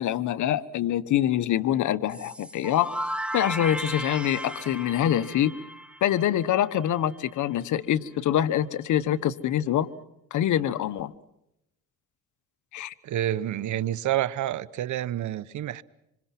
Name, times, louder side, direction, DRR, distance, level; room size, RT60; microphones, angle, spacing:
voice 1, 0.0-2.9 3.3-5.5 6.0-9.9 10.3-11.1 12.7-12.9, left 11 dB, 75° left, 1.2 m, -25 dB
sound 1, 2.1-6.8, equal, 5° right, 2.3 m, -35 dB
voice 2, 13.0-15.8, right 12 dB, 75° right, 1.0 m, -28 dB
26.5 x 26.5 x 5.9 m
cardioid pair, 90°, 30 cm